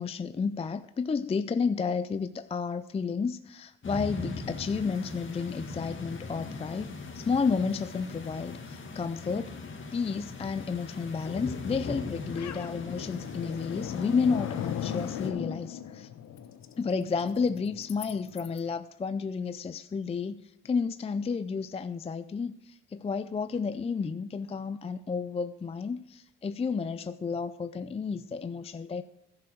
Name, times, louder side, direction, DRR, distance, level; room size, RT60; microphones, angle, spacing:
voice 1, 0.0-9.6 9.9-16.1 16.8-29.0, left 5 dB, 20° left, 12 dB, 0.4 m, -31 dB
sound 1, 3.8-15.3, left 3 dB, 40° left, 2.1 m, -40 dB
sound 2, 11.5-18.6, left 9 dB, 65° left, 1.0 m, -39 dB
11.5 x 6.8 x 7.9 m, 0.81 s
cardioid pair, 90°, 30 cm